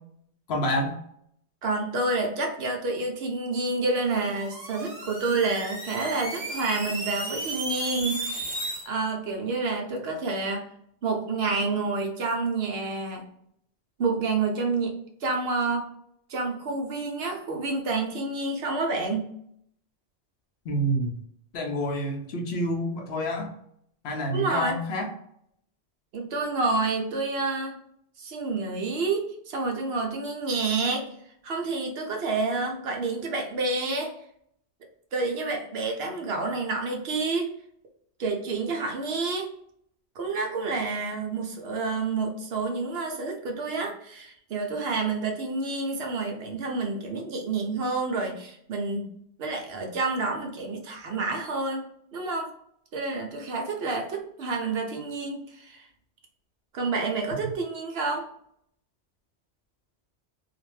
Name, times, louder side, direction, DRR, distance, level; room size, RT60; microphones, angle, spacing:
voice 1, 0.5-1.0 20.7-21.2 21.5-23.5 24.0-25.1, equal, 65° left, 3 dB, 0.8 m, -28 dB
voice 2, 1.6-8.6 8.9-10.7 11.0-13.3 14.0-14.9 15.2-15.9 16.3-19.3 24.3-24.8 26.1-27.8 28.2-31.1 31.4-34.1 35.1-37.5 38.2-39.5 40.2-49.1 49.4-51.9 52.1-52.5 52.9-55.9 56.7-58.3, right 3 dB, 65° right, 2 dB, 0.8 m, -29 dB
sound 1, 4.0-8.8, right 1 dB, 40° right, 0.9 m, -34 dB
2.5 x 2.1 x 3.1 m, 0.71 s
omnidirectional pair, 1.2 m